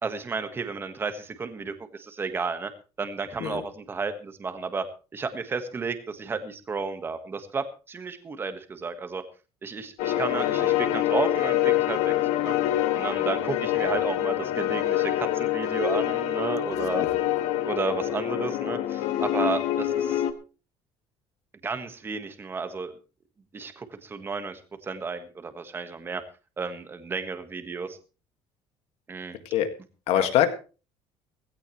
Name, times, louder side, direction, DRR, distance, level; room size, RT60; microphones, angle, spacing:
voice 1, 0.0-2.7 3.0-4.8 5.1-9.2 9.6-12.1 12.4-12.5 12.9-17.0 17.6-20.2 21.6-22.9 23.5-26.2 26.6-28.0 29.1-29.4 30.2-30.3, right 4 dB, 20° right, 8 dB, 1.5 m, -32 dB
sound 1, 10.0-20.3, left 13 dB, 90° left, 1.4 m, -26 dB
voice 2, 30.1-30.5, left 11 dB, 65° left, 8 dB, 1.9 m, -23 dB
17.0 x 16.0 x 3.2 m, 0.35 s
cardioid pair, 160°, 11 cm